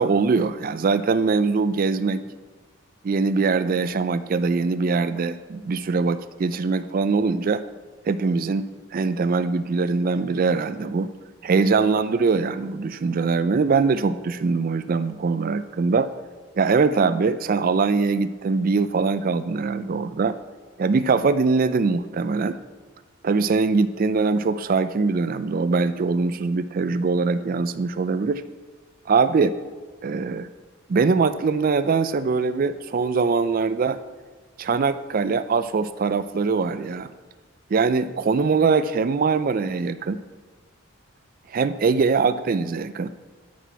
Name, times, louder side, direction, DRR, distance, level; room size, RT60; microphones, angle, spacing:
voice 1, 0.0-2.2 3.0-7.6 8.1-8.6 8.9-11.1 11.4-16.1 16.6-20.4 20.8-22.6 23.2-28.4 29.1-29.5 30.0-30.5 30.9-34.0 34.6-37.1 37.7-40.2 41.5-43.1, right 4 dB, 45° right, 13 dB, 0.4 m, -22 dB
12.5 x 5.9 x 4.6 m, 1.4 s
head